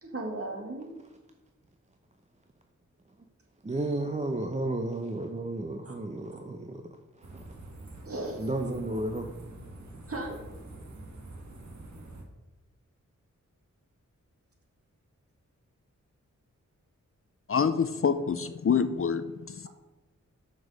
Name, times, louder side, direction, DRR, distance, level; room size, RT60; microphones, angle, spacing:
voice 1, 0.0-0.9 5.8-5.9 8.0-8.5 10.1-10.4, right 2 dB, 45° right, 0 dB, 1.9 m, -36 dB
voice 2, 3.6-6.8 7.2-7.5 8.4-9.3, right 2 dB, 20° right, 4 dB, 0.7 m, -32 dB
sound 1, 7.2-12.2, right 2 dB, 65° right, 1.4 m, -46 dB
voice 3, 17.5-19.7, left 6 dB, 45° left, 12 dB, 0.5 m, -27 dB
5.9 x 5.2 x 6.3 m, 1.1 s
cardioid pair, 50°, 31 cm